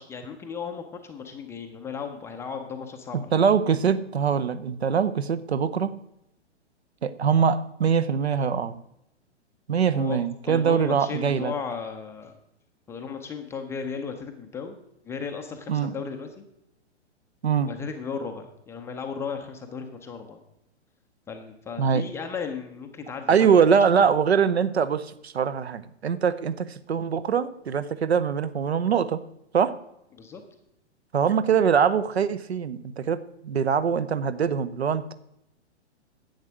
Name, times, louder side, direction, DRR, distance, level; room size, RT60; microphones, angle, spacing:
voice 1, 0.0-3.3 9.9-10.2 10.5-12.3 12.9-14.8 15.0-16.4 17.6-20.4 21.3-23.5 30.1-30.4, left 6 dB, 10° left, 4 dB, 0.5 m, -35 dB
voice 2, 3.1-6.0 7.0-8.8 9.7-11.5 15.7-15.9 17.4-17.7 21.8-22.1 23.3-29.2 29.5-29.7 31.1-35.1, right 7 dB, 65° right, 13 dB, 0.8 m, -23 dB
10.5 x 8.0 x 6.2 m, 0.81 s
figure-of-eight pair, 115°, 35 cm